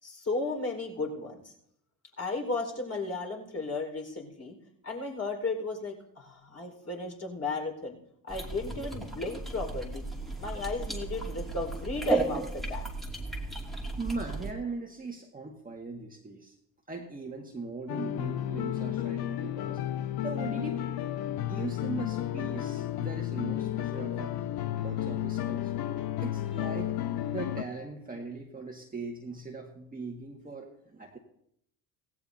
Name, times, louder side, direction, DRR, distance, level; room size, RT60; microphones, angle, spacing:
voice 1, 0.0-1.5 2.2-4.6 4.8-8.0 8.2-10.0 10.4-12.9, left 3 dB, 30° left, 1 dB, 4.8 m, -34 dB
sound 1, 8.3-14.5, right 3 dB, ahead, 2.6 m, -34 dB
voice 2, 14.0-16.5 16.9-19.8 20.2-20.8 21.4-24.4 24.8-25.7 26.2-27.0 27.3-31.2, right 3 dB, 15° right, 0 dB, 2.0 m, -39 dB
sound 2, 17.9-27.6, left 12 dB, 50° left, 0.9 m, -32 dB
17.0 x 16.5 x 2.8 m, 0.72 s
hypercardioid pair, 65°, 49 cm